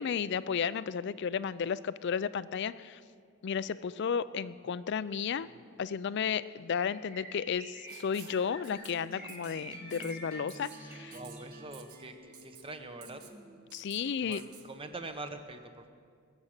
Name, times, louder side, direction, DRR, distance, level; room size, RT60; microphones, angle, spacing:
voice 1, 0.0-3.0 3.4-5.5 5.8-11.2 13.7-14.4, left 7 dB, 50° left, 16 dB, 0.4 m, -33 dB
Bird, 6.7-11.6, equal, 5° right, 1.4 m, -49 dB
Writing, 7.9-8.4 8.6-8.9 9.3-9.6 9.9-10.1 10.5-10.8 11.1-11.4 11.7-12.0 12.3-12.6 13.0-13.3 13.7-14.0 14.3-14.6, right 8 dB, 85° right, 1.2 m, -52 dB
sound 1, 8.7-13.8, right 1 dB, 40° right, 1.2 m, -51 dB
voice 2, 11.1-13.2 14.0-15.9, right 2 dB, 25° right, 8 dB, 0.8 m, -44 dB
21.5 x 7.3 x 6.5 m, 2.2 s
head